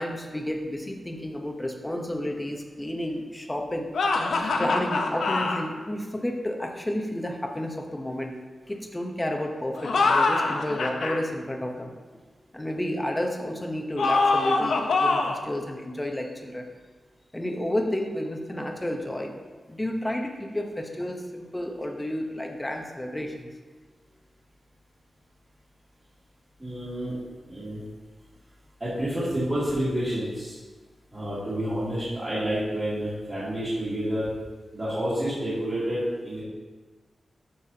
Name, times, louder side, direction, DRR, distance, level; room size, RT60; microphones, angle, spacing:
voice 1, 0.0-3.9 4.4-8.4 8.6-12.2 12.5-16.7 17.3-19.3 19.7-23.5, left 1 dB, 10° left, 2 dB, 0.8 m, -31 dB
sound 1, 3.9-5.6 9.8-11.2 14.0-15.5, left 3 dB, 75° left, 0.7 m, -24 dB
voice 2, 26.6-27.2 27.5-27.8 28.8-30.5 31.1-34.3 34.7-36.4, equal, 20° right, -13 dB, 2.3 m, -29 dB
13.0 x 5.5 x 2.8 m, 1.3 s
wide cardioid pair, 170°, 0 cm